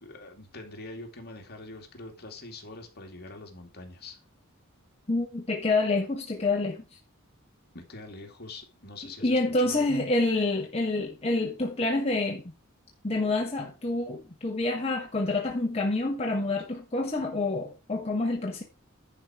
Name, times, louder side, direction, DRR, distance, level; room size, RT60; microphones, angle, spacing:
voice 1, 0.0-4.2 7.7-9.9, left 2 dB, 50° left, 2.5 m, -44 dB
voice 2, 5.1-6.8 9.2-12.4 13.0-18.6, left 2 dB, 30° left, 1.3 m, -27 dB
10.5 x 4.9 x 5.9 m
head